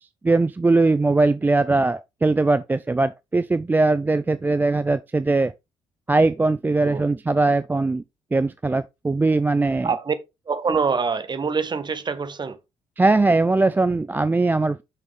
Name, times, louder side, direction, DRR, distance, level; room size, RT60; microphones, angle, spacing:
voice 1, 0.0-5.5 6.1-8.0 8.3-9.9 13.0-14.8, right 3 dB, 15° right, 0.4 m, -20 dB
voice 2, 9.8-10.1 10.5-12.6, right 5 dB, 30° right, 1.1 m, -25 dB
6.4 x 6.4 x 3.5 m
figure-of-eight pair, 45°, 14 cm